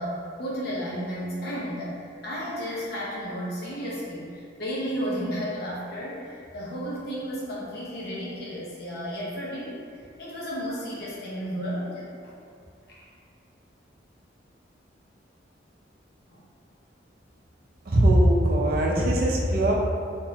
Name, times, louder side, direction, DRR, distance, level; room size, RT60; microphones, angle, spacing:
voice 1, 0.0-12.3 12.9-13.0 16.3-16.5, equal, 55° left, -6 dB, 0.9 m, -33 dB
voice 2, 17.9-19.7, right 1 dB, 50° right, -2 dB, 0.5 m, -20 dB
3.5 x 3.1 x 2.8 m, 2.3 s
head